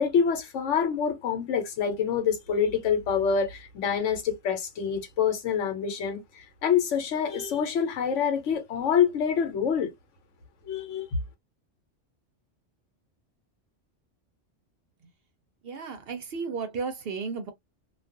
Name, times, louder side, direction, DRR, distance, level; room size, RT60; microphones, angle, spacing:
voice 1, 0.0-9.9 10.6-11.1, left 7 dB, 75° left, 1.1 m, -26 dB
voice 2, 15.6-17.5, right 5 dB, 60° right, 0.7 m, -33 dB
2.3 x 2.3 x 2.5 m
omnidirectional pair, 1.3 m